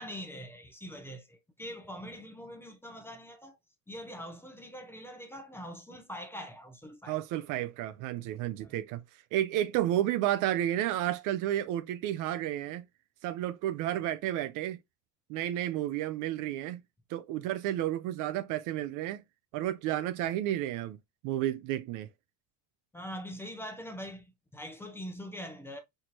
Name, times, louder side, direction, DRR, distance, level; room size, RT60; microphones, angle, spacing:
voice 1, 0.0-3.6 3.9-7.2 8.6-8.7 22.9-25.8, equal, 5° left, 0.6 m, -43 dB
voice 2, 7.1-9.0 9.3-12.8 13.2-14.8 15.3-16.8 17.1-19.2 19.5-21.0 21.2-22.1, right 13 dB, 55° right, 0.5 m, -31 dB
4.3 x 2.8 x 3.0 m
cardioid pair, 135°, 37 cm